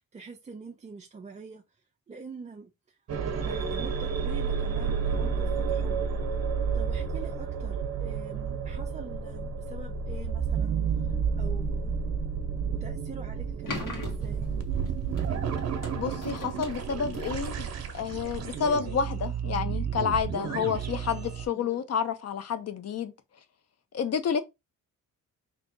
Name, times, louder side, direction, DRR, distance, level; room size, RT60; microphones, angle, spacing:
voice 1, 0.0-1.6 2.1-3.0 3.4-6.1 6.7-10.8 11.0-11.9 12.7-14.5 21.5-21.8, right 4 dB, 20° right, 0.4 m, -45 dB
sound 1, 3.1-21.5, right 6 dB, 45° right, 0.9 m, -31 dB
sound 2, 13.7-18.5, left 2 dB, 60° left, 1.5 m, -41 dB
voice 2, 16.0-17.7 17.9-23.1 23.9-24.4, left 7 dB, 45° left, 0.6 m, -29 dB
3.7 x 2.8 x 3.6 m
cardioid pair, 130°, 35 cm